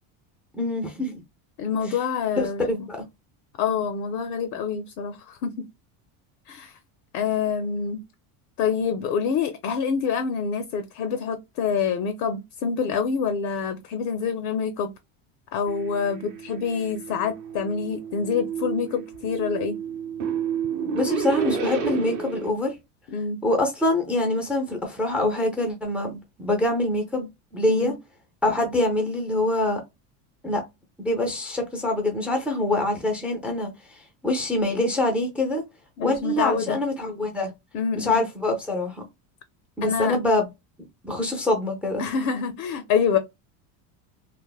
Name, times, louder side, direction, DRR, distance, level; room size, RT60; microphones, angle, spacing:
voice 1, 0.5-1.2 1.9-2.0 2.4-3.0 20.9-22.7 23.4-27.9 28.4-29.8 30.4-30.6 31.0-35.6 36.0-37.5 37.9-39.0 39.8-40.5 41.0-42.0, left 1 dB, 5° right, 0.4 m, -25 dB
voice 2, 1.6-2.9 3.6-5.5 6.5-6.8 7.1-8.0 8.6-14.9 15.5-19.8 23.1-23.4 27.7-27.9 36.0-36.8 37.7-38.2 39.8-40.2 42.0-43.2, left 6 dB, 50° left, 0.5 m, -26 dB
sound 1, 15.7-22.5, right 5 dB, 40° right, 0.7 m, -31 dB
3.3 x 2.0 x 2.2 m
cardioid pair, 145°, 45 cm